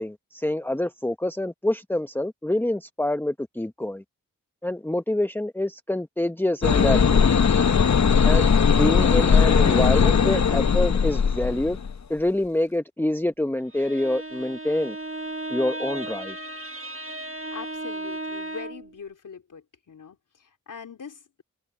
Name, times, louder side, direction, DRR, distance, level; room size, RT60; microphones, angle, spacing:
voice 1, 0.0-4.0 4.6-7.3 8.2-11.8 12.1-15.0 15.5-16.4, left 1 dB, 5° left, 0.9 m, -26 dB
sound 1, 6.6-12.0, left 6 dB, 60° left, 1.0 m, -19 dB
Bowed string instrument, 13.6-18.9, right 2 dB, 40° right, 2.0 m, -35 dB
voice 2, 17.5-21.4, left 6 dB, 75° left, 3.1 m, -42 dB
cardioid pair, 40°, 32 cm